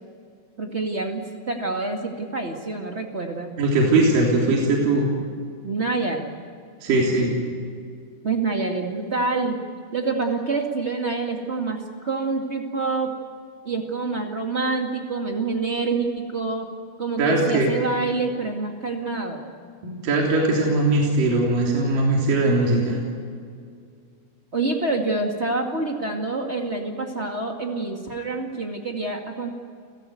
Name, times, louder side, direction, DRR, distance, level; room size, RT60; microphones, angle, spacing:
voice 1, 0.6-3.5 5.6-6.3 8.2-9.6 9.9-13.1 13.6-16.7 17.0-19.4 24.5-29.5, right 3 dB, 40° right, 2 dB, 0.9 m, -27 dB
voice 2, 3.6-5.1 6.8-7.3 17.2-17.7 19.8-23.0, right 2 dB, 55° right, -2 dB, 4.9 m, -20 dB
30.0 x 16.5 x 9.4 m, 2.2 s
omnidirectional pair, 4.9 m